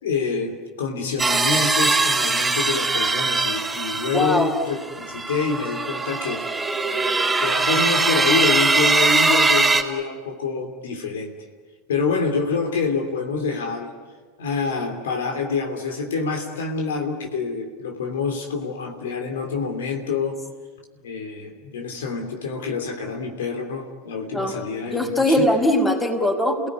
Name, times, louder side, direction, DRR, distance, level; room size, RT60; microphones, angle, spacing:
voice 1, 0.0-6.4 7.4-11.3 11.9-13.9 14.4-20.4 21.0-25.4, left 4 dB, 80° left, 4 dB, 3.1 m, -26 dB
sound 1, 1.2-9.8, right 3 dB, 10° right, 3.9 m, -21 dB
voice 2, 4.1-4.5 24.3-24.6 24.9-26.7, left 1 dB, 15° left, 4 dB, 5.2 m, -21 dB
29.0 x 18.5 x 9.8 m, 1.5 s
hypercardioid pair, 90°, 0 cm